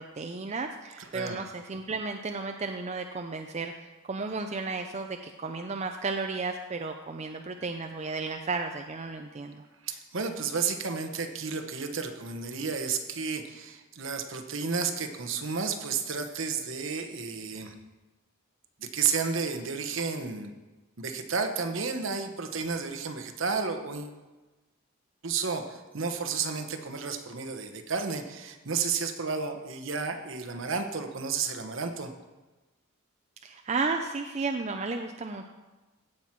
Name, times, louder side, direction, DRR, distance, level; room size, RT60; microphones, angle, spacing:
voice 1, 0.0-9.6 33.4-35.5, right 4 dB, 30° right, 5 dB, 0.5 m, -33 dB
voice 2, 1.0-1.4 9.8-17.7 18.8-20.5 21.0-24.2 25.2-32.1, right 5 dB, 60° right, 6 dB, 1.0 m, -32 dB
16.0 x 5.9 x 4.6 m, 1.2 s
head